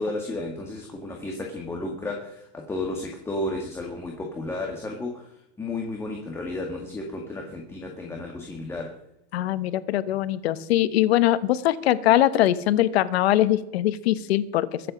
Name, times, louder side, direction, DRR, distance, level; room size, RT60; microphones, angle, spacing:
voice 1, 0.0-9.0, left 2 dB, 10° left, 0 dB, 1.8 m, -33 dB
voice 2, 9.3-14.7, left 13 dB, 85° left, 14 dB, 1.1 m, -22 dB
22.5 x 7.9 x 5.2 m, 0.80 s
supercardioid pair, 160°, 31 cm